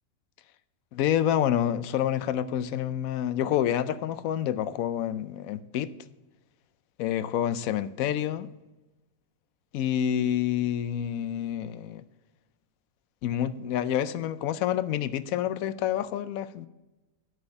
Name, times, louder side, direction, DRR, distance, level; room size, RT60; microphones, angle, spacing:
voice 1, 0.9-5.9 7.0-8.5 9.7-12.0 13.2-16.7, left 10 dB, 80° left, 1.0 m, -28 dB
9.8 x 6.3 x 5.1 m
omnidirectional pair, 1.5 m